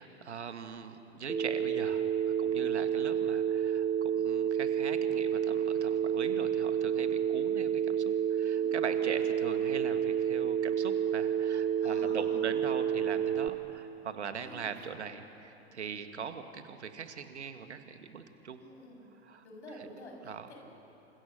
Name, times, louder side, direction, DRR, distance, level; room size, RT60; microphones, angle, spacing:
voice 1, 0.0-18.6 19.2-19.4 19.7-19.9 20.2-20.5, right 6 dB, 80° right, 8 dB, 2.0 m, -41 dB
Telephone, 1.3-13.5, right 8 dB, 20° right, 1.2 m, -30 dB
voice 2, 8.4-8.8 11.8-12.4 14.4-14.6 18.6-19.1 19.4-20.6, left 1 dB, 80° left, 1 dB, 7.3 m, -49 dB
29.0 x 27.0 x 6.7 m, 2.9 s
figure-of-eight pair, 85°, 34 cm